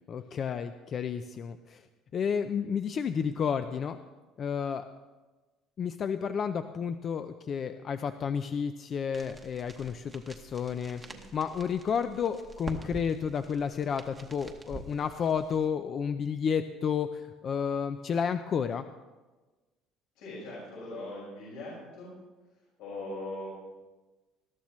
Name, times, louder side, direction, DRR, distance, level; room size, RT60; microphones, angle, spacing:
voice 1, 0.1-1.8 2.1-4.0 4.4-4.8 5.8-11.0 11.3-18.9, left 7 dB, 30° left, 9 dB, 0.4 m, -31 dB
sound 1, 9.1-15.7, right 3 dB, 15° right, 1.0 m, -47 dB
voice 2, 20.1-22.1 22.8-23.5, left 2 dB, 75° left, -7 dB, 5.8 m, -41 dB
20.5 x 13.0 x 3.1 m, 1.2 s
cardioid pair, 175°, 0 cm